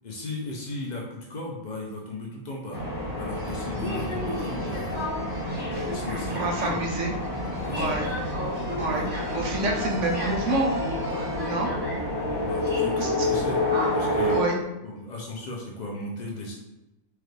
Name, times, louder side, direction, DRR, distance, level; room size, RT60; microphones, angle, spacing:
voice 1, 0.0-2.8 3.2-5.1 5.9-6.8 7.6-8.2 8.9-9.1 12.2-13.6 13.9-14.4 14.8-16.6, left 2 dB, 80° left, -3 dB, 0.4 m, -36 dB
sound 1, 2.7-14.4, left 1 dB, 10° right, 0.7 m, -28 dB
sound 2, 3.3-11.5, right 2 dB, 75° right, 0.4 m, -42 dB
voice 2, 6.3-7.1 7.7-8.1 8.8-10.7 11.4-11.7 13.0-13.1 14.3-14.6, right 2 dB, 60° right, -1 dB, 1.0 m, -27 dB
4.6 x 2.4 x 3.2 m, 0.95 s
omnidirectional pair, 1.6 m